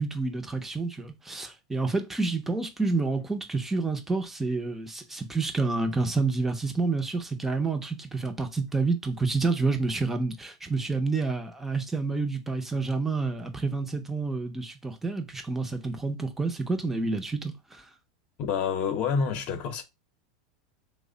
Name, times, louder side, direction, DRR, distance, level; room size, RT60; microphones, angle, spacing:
voice 1, 0.0-17.9, right 3 dB, 10° right, 0.6 m, -29 dB
voice 2, 18.4-19.8, left 6 dB, 45° left, 0.8 m, -28 dB
3.2 x 2.1 x 3.8 m
supercardioid pair, 125°, 3 cm